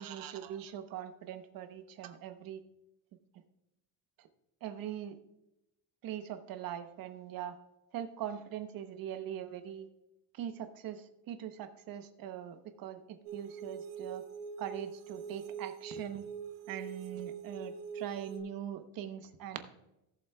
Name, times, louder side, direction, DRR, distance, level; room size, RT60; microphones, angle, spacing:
voice 1, 0.0-2.6 4.2-4.3 4.6-5.2 6.0-7.6 7.9-9.9 10.3-14.2 14.6-16.3 16.7-19.7, right 10 dB, 55° right, 9 dB, 0.9 m, -42 dB
sound 1, 13.3-18.4, right 6 dB, 80° right, 1.3 m, -43 dB
17.5 x 7.1 x 2.2 m, 0.89 s
cardioid pair, 180°, 42 cm